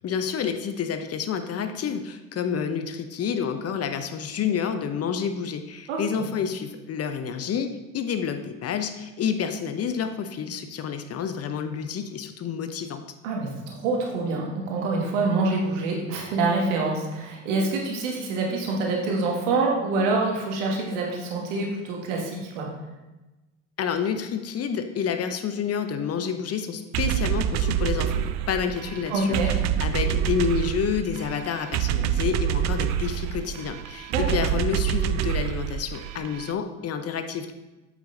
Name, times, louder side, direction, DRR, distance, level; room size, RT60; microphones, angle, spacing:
voice 1, 0.0-13.0 23.8-37.5, left 7 dB, 40° left, 8 dB, 0.8 m, -29 dB
voice 2, 5.9-6.3 13.2-22.7 29.1-29.5 34.1-34.4, right 3 dB, 75° right, -1 dB, 1.6 m, -26 dB
sound 1, 26.9-36.5, right 10 dB, 45° right, 0.4 m, -27 dB
8.1 x 5.0 x 3.9 m, 1.1 s
hypercardioid pair, 55°, 37 cm